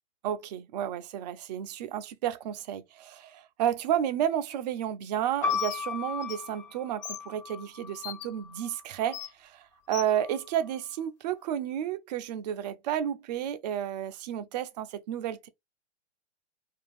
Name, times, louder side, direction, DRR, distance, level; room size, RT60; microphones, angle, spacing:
voice 1, 0.2-15.5, right 10 dB, 40° right, 0.4 m, -32 dB
sound 1, 5.4-9.3 10.1-10.8, left 6 dB, 20° left, 0.9 m, -36 dB
Bird, 5.5-5.8 6.2-6.4 7.0-7.2 8.0-8.3 9.1-9.3 9.9-10.1, left 11 dB, 50° left, 0.5 m, -38 dB
2.5 x 2.4 x 3.3 m
hypercardioid pair, 130°, 36 cm